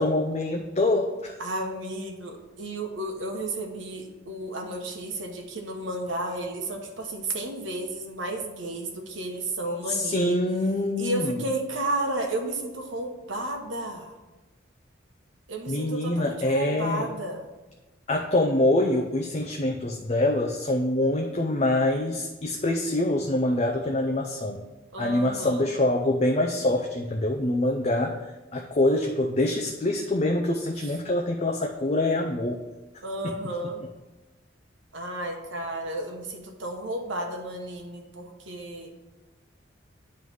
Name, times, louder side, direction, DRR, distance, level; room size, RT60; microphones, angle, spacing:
voice 1, 0.0-1.4 9.9-11.4 15.7-17.1 18.1-24.6 25.0-32.6 33.2-33.3, left 1 dB, 35° left, 1 dB, 0.5 m, -25 dB
voice 2, 1.4-10.4 11.0-14.1 15.5-17.5 24.9-25.7 33.0-33.8 34.9-38.9, right 1 dB, 90° right, 2 dB, 1.1 m, -32 dB
9.3 x 3.2 x 5.4 m, 1.1 s
head